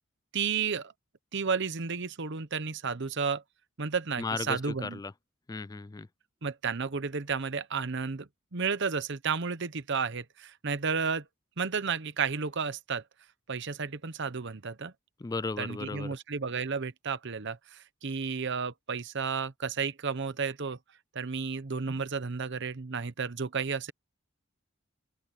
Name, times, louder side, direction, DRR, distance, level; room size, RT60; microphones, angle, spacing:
voice 1, 0.3-0.9 1.3-3.4 3.8-5.0 6.4-11.2 11.6-13.0 13.5-14.9 15.6-20.8 21.1-23.9, right 5 dB, 60° right, 0.9 m, -32 dB
voice 2, 4.2-5.1 5.5-6.1 15.2-16.2, left 3 dB, 20° left, 0.3 m, -35 dB
open air
head